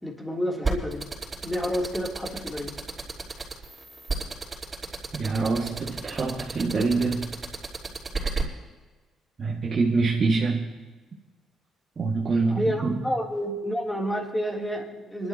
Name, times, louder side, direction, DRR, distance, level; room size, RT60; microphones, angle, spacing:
voice 1, 0.0-1.1 1.4-2.7 12.4-15.3, equal, 10° left, -1 dB, 3.3 m, -29 dB
sound 1, 0.6-8.4, right 4 dB, 30° right, 5.3 m, -31 dB
voice 2, 5.2-7.3 9.4-10.6 12.0-13.0, right 4 dB, 45° right, -5 dB, 2.1 m, -25 dB
25.5 x 12.5 x 3.0 m, 1.3 s
supercardioid pair, 65°, 0 cm